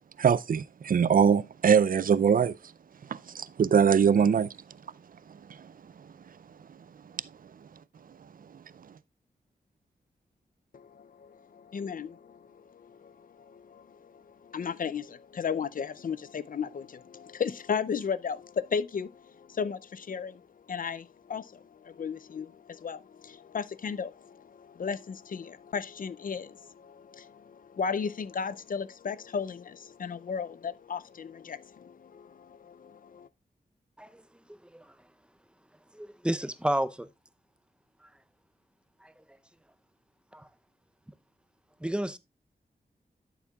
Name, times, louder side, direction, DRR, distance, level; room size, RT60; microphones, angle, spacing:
voice 1, 0.2-2.6 3.1-4.5 5.6-5.7, right 7 dB, 55° right, 0.4 m, -22 dB
voice 2, 10.7-33.3, left 6 dB, 55° left, 0.4 m, -35 dB
voice 3, 35.9-37.1 39.0-39.1 40.3-40.5 41.8-42.2, right 1 dB, 5° right, 0.6 m, -31 dB
12.0 x 7.2 x 2.3 m
wide cardioid pair, 110°, 17 cm